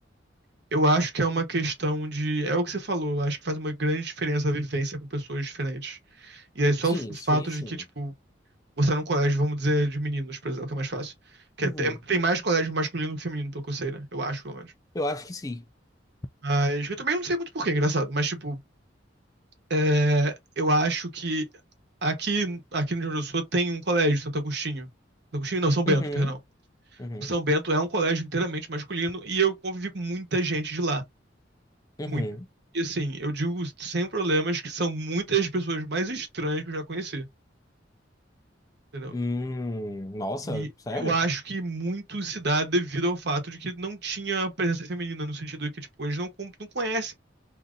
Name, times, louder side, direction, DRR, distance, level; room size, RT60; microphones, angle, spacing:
voice 1, 0.7-8.1 8.8-11.1 11.6-14.7 16.4-18.6 19.7-21.5 22.0-24.9 25.3-26.4 27.2-31.0 32.1-32.2 32.7-37.3 38.9-39.1 40.4-47.1, right 2 dB, 60° right, 1.0 m, -27 dB
voice 2, 6.8-7.8 11.6-12.0 14.9-15.7 25.9-26.3 27.0-27.3 32.0-32.5 39.1-41.2, left 1 dB, 20° left, 0.3 m, -32 dB
2.7 x 2.5 x 3.7 m
head